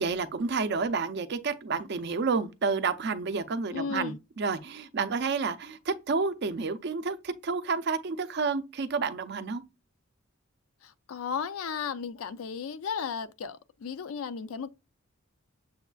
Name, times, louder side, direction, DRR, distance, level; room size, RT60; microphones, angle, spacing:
voice 1, 0.0-9.6, right 4 dB, 50° right, 0.5 m, -30 dB
voice 2, 3.7-4.2 10.8-14.7, left 6 dB, 80° left, 0.4 m, -35 dB
7.0 x 2.4 x 2.2 m
head